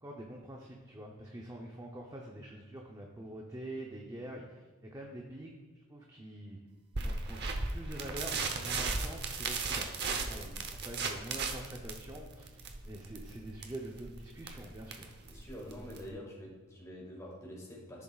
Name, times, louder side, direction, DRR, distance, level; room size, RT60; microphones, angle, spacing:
voice 1, 0.0-5.6 5.9-6.6 7.0-7.4 7.7-9.9 10.3-10.5 10.8-12.6 12.9-15.1, right 1 dB, 15° right, 0 dB, 0.7 m, -45 dB
sound 1, 6.9-16.1, right 4 dB, 50° right, 0.8 m, -37 dB
voice 2, 15.3-18.0, equal, 15° left, -4 dB, 2.0 m, -46 dB
14.0 x 7.3 x 2.4 m, 1.4 s
head